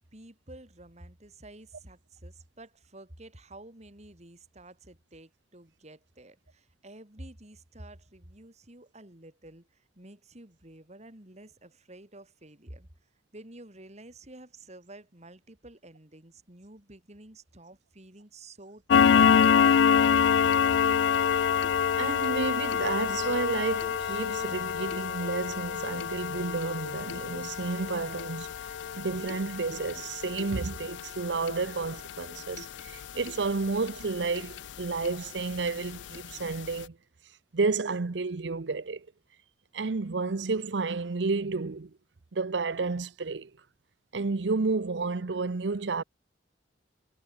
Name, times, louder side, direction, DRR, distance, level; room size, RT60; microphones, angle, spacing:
voice 1, 0.0-9.7 10.0-12.9 13.3-19.6 20.1-20.2 20.9-21.0, right 1 dB, 40° right, 3.7 m, -50 dB
sound 1, 18.9-34.0 34.4-34.6 35.0-35.1 35.6-35.7 36.1-36.2 36.5-36.7, left 7 dB, 85° left, 0.4 m, -26 dB
voice 2, 22.0-28.5 28.9-37.0 37.5-39.1 39.7-41.9 42.3-43.5 44.1-46.0, right 4 dB, 75° right, 0.7 m, -31 dB
head